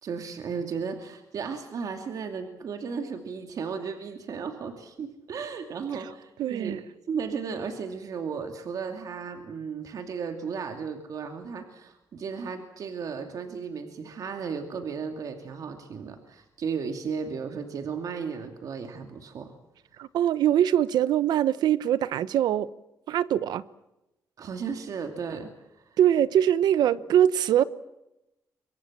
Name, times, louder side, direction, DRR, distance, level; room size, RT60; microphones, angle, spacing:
voice 1, 0.0-6.8 7.1-19.5 24.4-25.5 25.8-26.0, right 6 dB, 60° right, 2.5 m, -35 dB
voice 2, 6.4-6.8 20.0-22.7 23.1-23.6 26.0-27.6, right 10 dB, 85° right, 1.0 m, -23 dB
27.5 x 23.5 x 7.4 m
cardioid pair, 120°, 7 cm